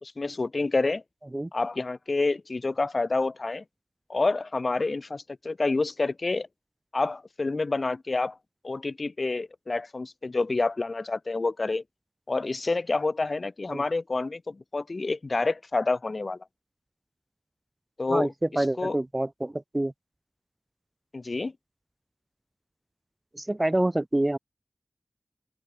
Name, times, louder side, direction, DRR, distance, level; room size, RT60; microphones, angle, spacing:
voice 1, 0.0-1.0 1.5-3.6 4.1-6.5 6.9-8.4 8.6-11.8 12.3-16.4 18.0-19.0 21.1-21.5, left 3 dB, 55° left, 2.3 m, -28 dB
voice 2, 18.6-19.9 23.3-24.4, right 1 dB, 25° right, 2.7 m, -27 dB
open air
wide cardioid pair, 50°, 0 cm